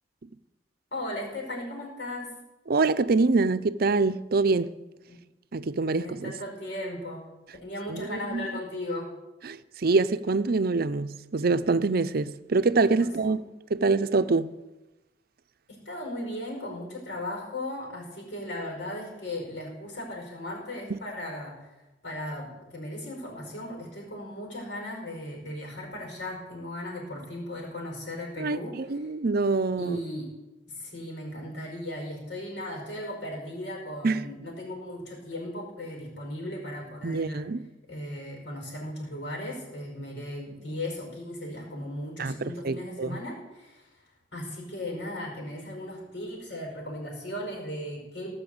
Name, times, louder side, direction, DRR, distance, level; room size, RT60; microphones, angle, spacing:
voice 1, 0.9-2.3 5.1-5.2 5.9-7.2 7.6-9.1 13.0-13.3 15.7-21.7 22.0-28.8 29.8-30.3 30.7-37.5 37.9-43.9 44.3-48.3, left 1 dB, 75° left, 5.3 m, -37 dB
voice 2, 2.7-4.7 5.5-6.3 7.9-8.5 9.4-13.4 13.7-14.5 20.9-21.0 28.4-30.0 34.0-34.3 37.0-37.7 42.2-43.2, right 3 dB, 55° right, 0.6 m, -25 dB
18.5 x 6.3 x 8.0 m
head